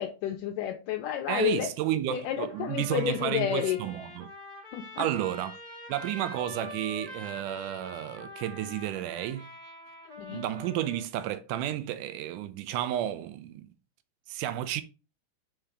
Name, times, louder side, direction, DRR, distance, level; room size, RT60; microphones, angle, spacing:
voice 1, 0.0-1.7 2.1-3.8 4.7-5.1 10.2-10.4, left 11 dB, 80° left, 2.2 m, -30 dB
voice 2, 1.3-4.3 5.0-5.6 5.9-9.5 10.3-13.7 14.3-14.8, right 12 dB, 80° right, 2.0 m, -32 dB
Trumpet, 2.5-11.1, left 1 dB, 20° right, 1.7 m, -45 dB
5.2 x 4.5 x 4.8 m
omnidirectional pair, 3.8 m